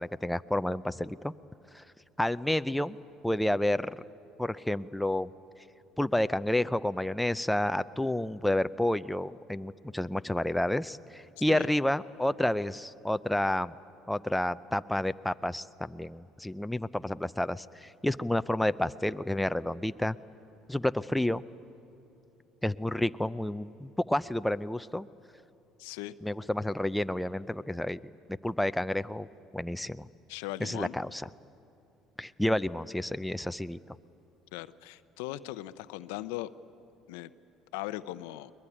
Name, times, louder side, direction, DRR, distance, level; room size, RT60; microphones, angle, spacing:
voice 1, 0.0-1.3 1.7-1.8 2.2-3.0 3.2-4.0 4.4-5.3 6.0-13.7 14.1-20.2 20.7-21.4 22.6-25.1 26.2-28.0 28.4-29.3 29.5-30.1 30.6-31.2 32.2-33.8, left 1 dB, 5° left, 12 dB, 0.6 m, -30 dB
voice 2, 25.8-26.2 30.3-31.0 34.5-36.5 37.1-37.3 37.7-38.5, left 16 dB, 85° left, 14 dB, 0.6 m, -38 dB
21.5 x 21.0 x 10.0 m, 2.7 s
supercardioid pair, 85°, 0 cm